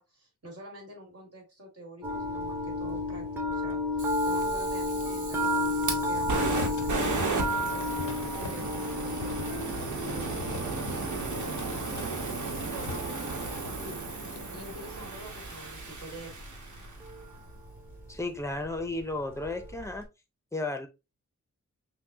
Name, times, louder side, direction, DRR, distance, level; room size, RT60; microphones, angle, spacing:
voice 1, 0.0-7.9 8.4-9.4 10.0-10.9 11.1-13.3 13.8-14.1 14.5-16.3, right 1 dB, 55° right, 2.2 m, -47 dB
sound 1, 2.0-20.0, left 1 dB, 5° right, 1.0 m, -34 dB
Fire, 4.0-17.1, right 3 dB, 80° right, 1.2 m, -35 dB
sound 2, 4.4-14.7 15.1-15.2 15.4-16.1 16.5-16.9, left 6 dB, 75° left, 0.6 m, -45 dB
voice 2, 18.1-20.1 20.5-20.9, left 2 dB, 10° left, 0.7 m, -33 dB
5.8 x 2.3 x 2.7 m
wide cardioid pair, 115°, 30 cm